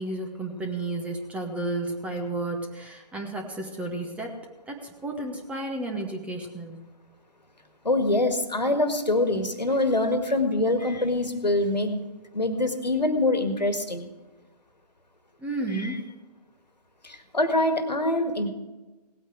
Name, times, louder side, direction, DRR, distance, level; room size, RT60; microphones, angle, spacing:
voice 1, 0.0-4.3 4.7-6.8 15.4-16.0, right 2 dB, 5° right, 2 dB, 1.0 m, -32 dB
voice 2, 7.8-12.1 12.3-14.1 15.7-16.0 17.0-18.5, left 2 dB, 85° left, 7 dB, 1.8 m, -24 dB
17.5 x 8.9 x 4.6 m, 1.2 s
figure-of-eight pair, 135°, 21 cm